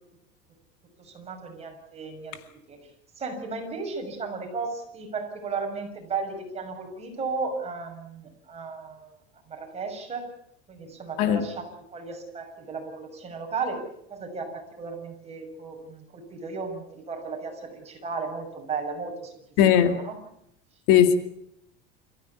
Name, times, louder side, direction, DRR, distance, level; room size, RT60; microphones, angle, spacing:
voice 1, 1.0-2.4 2.7-2.8 3.2-9.2 9.5-10.3 10.7-13.8 14.1-19.3 19.7-20.2, right 4 dB, 20° right, 2 dB, 6.7 m, -35 dB
voice 2, 19.6-20.0 20.9-21.2, left 9 dB, 65° left, 8 dB, 2.4 m, -18 dB
28.0 x 15.5 x 8.3 m, 0.75 s
cardioid pair, 150°, 29 cm